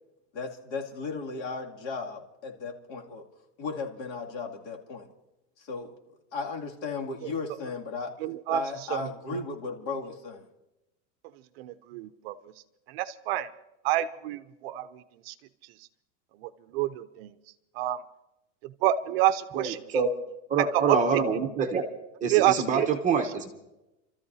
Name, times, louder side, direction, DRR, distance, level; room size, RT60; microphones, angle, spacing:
voice 1, 0.3-3.2 3.6-5.1 5.6-5.9 6.3-8.1 8.5-10.4, left 4 dB, 65° left, 0 dB, 2.6 m, -35 dB
voice 2, 8.2-8.6 8.9-9.0 11.6-12.3 12.9-13.5 13.8-15.3 16.4-17.3 17.8-18.0 18.8-19.8 20.7-21.0 22.3-22.8, right 14 dB, 50° right, 12 dB, 0.6 m, -27 dB
voice 3, 19.5-20.1 20.5-21.8 22.2-23.5, right 6 dB, 20° right, 4 dB, 1.0 m, -26 dB
30.0 x 13.5 x 2.7 m, 0.94 s
supercardioid pair, 160°, 39 cm